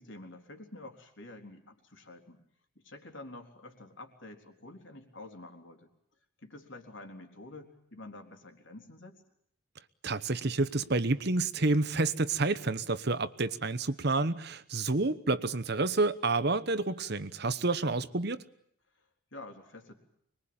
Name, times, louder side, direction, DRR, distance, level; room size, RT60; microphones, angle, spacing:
voice 1, 0.0-2.4 2.8-5.9 6.4-9.2 17.8-18.0 18.9-19.9, left 2 dB, 60° left, 3.9 m, -48 dB
voice 2, 10.0-18.4, right 3 dB, 50° right, 1.0 m, -29 dB
25.5 x 22.5 x 8.8 m
head